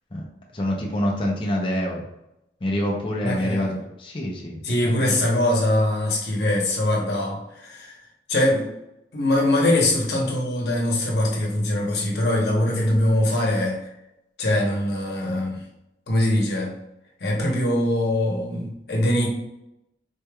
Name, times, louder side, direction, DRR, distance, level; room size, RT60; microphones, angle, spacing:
voice 1, 0.5-2.0 2.6-5.2, equal, 30° left, -2 dB, 0.6 m, -27 dB
voice 2, 3.2-3.8 4.6-8.0 8.3-8.7 9.1-13.8 14.4-15.6 16.1-16.7 17.2-19.3, left 1 dB, 70° left, -2 dB, 1.0 m, -22 dB
4.2 x 3.3 x 2.3 m, 0.88 s
head